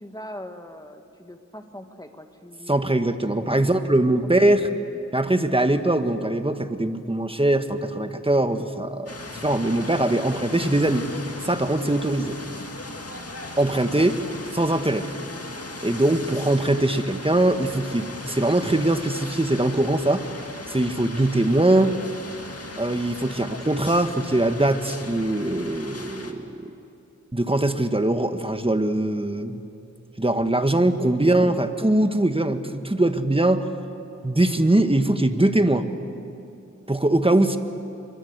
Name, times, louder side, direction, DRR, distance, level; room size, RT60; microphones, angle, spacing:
voice 1, 0.0-2.8 3.3-3.5 4.2-4.8 13.7-14.1 31.2-32.2, left 1 dB, 15° left, 5 dB, 2.1 m, -41 dB
voice 2, 2.7-4.7 5.1-9.1 9.4-11.1 11.4-12.4 13.6-14.1 14.5-15.1 15.8-20.3 20.7-21.9 22.8-26.7 27.3-29.6 30.2-33.6 34.2-35.9 36.9-37.6, right 1 dB, 20° right, 8 dB, 1.6 m, -22 dB
sound 1, 9.1-26.3, left 2 dB, 55° left, 2.1 m, -37 dB
25.5 x 23.0 x 8.2 m, 2.7 s
wide cardioid pair, 40°, 29 cm